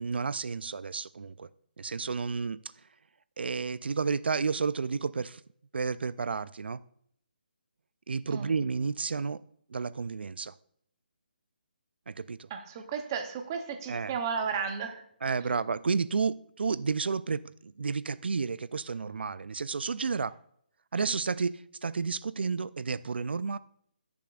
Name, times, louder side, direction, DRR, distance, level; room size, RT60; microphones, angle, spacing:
voice 1, 0.0-1.5 1.8-2.6 3.4-5.4 5.7-6.8 8.1-9.4 9.7-10.5 12.1-12.5 13.9-14.1 15.2-20.3 20.9-23.6, right 5 dB, 85° right, 17 dB, 0.3 m, -31 dB
voice 2, 12.5-15.0, right 6 dB, 20° right, 6 dB, 0.7 m, -34 dB
15.0 x 6.9 x 2.4 m, 0.68 s
hypercardioid pair, 170°, 6 cm